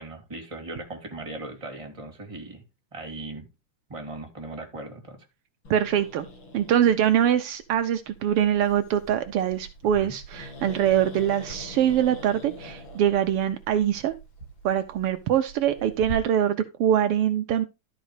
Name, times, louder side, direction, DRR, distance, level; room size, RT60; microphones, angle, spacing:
voice 1, 0.0-2.6 2.9-3.5 3.9-5.2 9.9-10.1, right 2 dB, 10° right, 2.0 m, -38 dB
Growling, 5.6-16.1, right 1 dB, 40° left, 2.6 m, -43 dB
voice 2, 5.7-6.3 6.5-14.1 14.6-17.6, right 10 dB, 90° right, 1.2 m, -23 dB
12.0 x 5.3 x 4.9 m
omnidirectional pair, 3.6 m